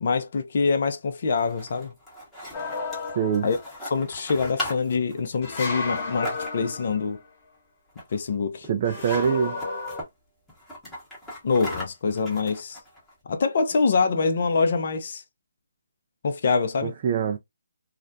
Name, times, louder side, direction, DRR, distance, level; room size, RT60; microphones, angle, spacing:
voice 1, 0.0-1.9 3.4-3.6 3.9-7.2 8.1-8.7 11.4-12.8 13.3-15.2 16.2-16.9, left 4 dB, 50° left, 0.5 m, -25 dB
sound 1, 1.2-6.9 7.9-8.4 8.6-8.7 9.0-10.1 10.5-13.1, left 1 dB, 5° left, 0.9 m, -39 dB
sound 2, 2.5-3.8 5.4-7.3 8.8-10.0, left 3 dB, 30° left, 1.1 m, -33 dB
voice 2, 3.2-3.5 8.7-9.6 16.8-17.4, right 7 dB, 35° right, 0.3 m, -24 dB
2.4 x 2.1 x 2.5 m
figure-of-eight pair, 155°, 0 cm